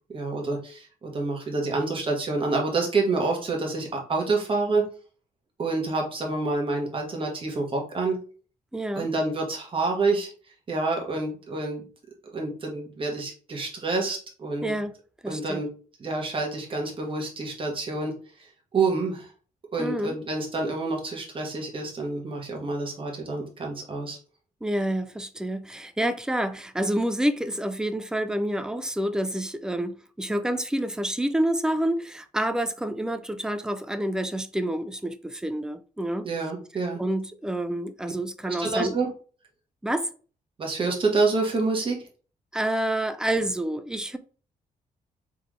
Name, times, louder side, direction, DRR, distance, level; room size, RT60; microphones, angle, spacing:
voice 1, 0.1-4.8 5.6-8.2 8.9-10.3 10.7-11.8 12.3-14.7 15.3-15.7 16.0-18.1 18.7-19.3 19.7-24.2 36.2-37.0 38.4-39.1 40.6-42.0, right 3 dB, 35° right, 1.4 m, -27 dB
voice 2, 8.7-9.1 14.6-14.9 15.2-15.6 19.8-20.2 24.6-36.3 37.0-39.0 39.8-40.1 42.5-44.2, right 1 dB, 5° right, 0.4 m, -28 dB
3.7 x 3.4 x 3.2 m
cardioid pair, 115°, 15 cm